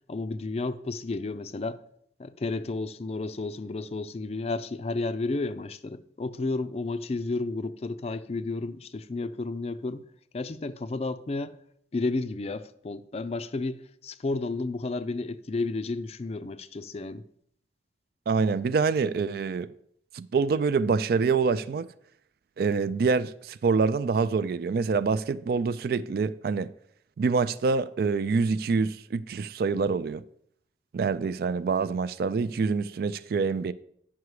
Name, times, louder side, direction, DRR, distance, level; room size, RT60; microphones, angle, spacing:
voice 1, 0.1-1.8 2.2-10.0 10.3-11.5 11.9-17.2, left 3 dB, 35° left, 0.4 m, -32 dB
voice 2, 18.3-19.7 20.1-21.9 22.6-26.7 27.2-30.2 30.9-33.7, right 4 dB, 55° right, 0.3 m, -26 dB
9.3 x 5.8 x 4.8 m
head